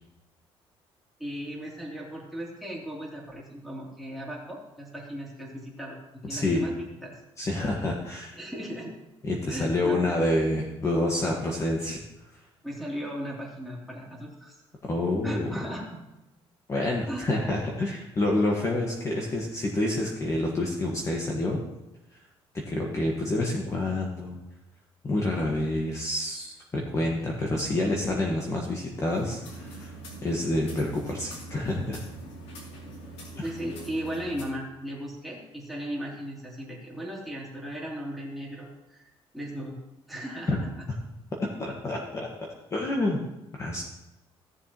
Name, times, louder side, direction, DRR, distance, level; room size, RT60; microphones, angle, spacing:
voice 1, 1.2-6.0 6.3-7.2 8.3-9.0 9.5-10.2 12.6-14.6 15.2-16.0 17.1-17.3 33.4-39.7 40.1-40.8, equal, ahead, -5 dB, 3.2 m, -37 dB
voice 2, 6.3-6.6 7.4-8.4 9.2-12.0 14.8-15.5 16.7-21.6 22.7-24.4 25.0-29.9 30.2-32.0 33.4-33.5 40.5-40.6 41.6-42.3 42.7-43.2 43.5-43.8, left 1 dB, 30° left, -1 dB, 1.5 m, -28 dB
sound 1, 29.0-34.5, right 2 dB, 85° left, 3.0 m, -43 dB
16.0 x 7.1 x 3.0 m, 0.95 s
cardioid pair, 125°, 11 cm